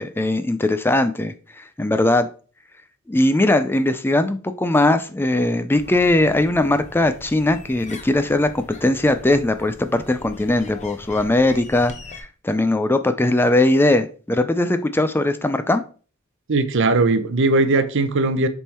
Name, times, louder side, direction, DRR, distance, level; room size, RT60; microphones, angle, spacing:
voice 1, 0.0-2.3 3.1-11.9 12.4-15.8, left 2 dB, 10° left, 0.4 m, -19 dB
sound 1, 5.7-12.2, left 2 dB, 35° left, 0.8 m, -41 dB
voice 2, 16.5-18.5, right 2 dB, 60° right, 0.7 m, -19 dB
7.3 x 3.6 x 4.2 m
head